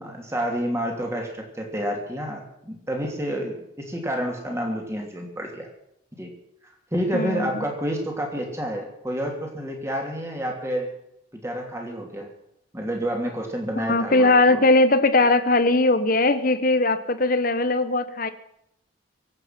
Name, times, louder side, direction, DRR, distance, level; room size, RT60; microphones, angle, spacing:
voice 1, 0.0-5.7 6.2-6.3 6.9-10.9 11.3-12.3 12.7-14.7, equal, 15° right, 1 dB, 3.0 m, -29 dB
voice 2, 7.1-7.6 13.9-18.3, left 2 dB, 45° left, 12 dB, 1.0 m, -20 dB
24.0 x 8.9 x 5.9 m, 0.78 s
head